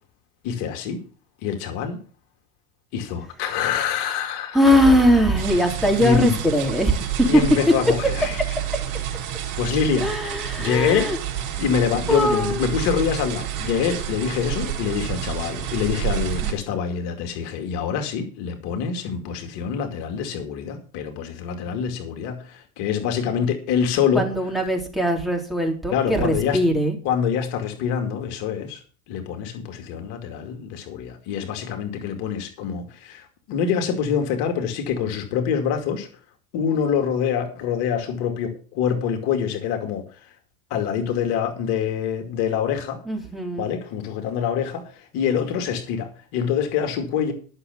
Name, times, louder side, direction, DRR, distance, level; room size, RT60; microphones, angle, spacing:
voice 1, 0.4-1.0 1.4-2.0 2.9-4.6 6.0-6.3 7.3-8.4 9.6-10.1 10.6-11.1 11.6-24.2 25.9-26.6 27.0-28.8 29.1-36.1 36.5-40.2 40.7-43.0 43.6-47.3, left 7 dB, 55° left, 5 dB, 2.4 m, -25 dB
voice 2, 4.5-7.4 10.0-11.2 12.1-12.7 16.4-16.5 24.1-27.0 43.1-43.7, equal, ahead, 1 dB, 3.4 m, -20 dB
sound 1, 5.4-16.5, right 11 dB, 45° right, 4.4 m, -29 dB
11.5 x 6.9 x 6.9 m, 0.40 s
hypercardioid pair, 90°, 46 cm